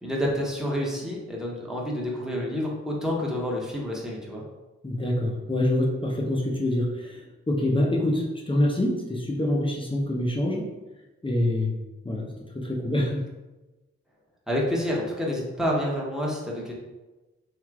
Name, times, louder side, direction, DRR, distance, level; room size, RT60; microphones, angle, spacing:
voice 1, 0.0-4.4 14.5-16.7, equal, ahead, -3 dB, 0.9 m, -28 dB
voice 2, 4.8-10.7 11.2-11.7 12.0-13.2, left 1 dB, 20° left, -2 dB, 0.6 m, -26 dB
3.1 x 2.8 x 2.3 m, 1.1 s
supercardioid pair, 40°, 29 cm